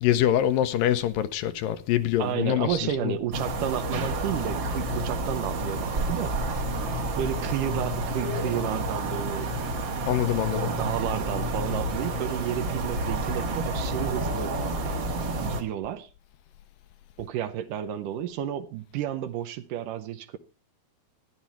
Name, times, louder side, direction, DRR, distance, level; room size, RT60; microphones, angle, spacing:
voice 1, 0.0-3.1 10.1-10.7, left 11 dB, 75° left, 2.3 m, -25 dB
voice 2, 2.2-6.4 7.2-9.5 10.6-14.5 15.4-16.1 17.2-20.4, right 10 dB, 75° right, 2.1 m, -31 dB
sound 1, 3.3-15.6, right 1 dB, 45° right, 1.7 m, -29 dB
13.5 x 11.0 x 4.3 m
omnidirectional pair, 4.2 m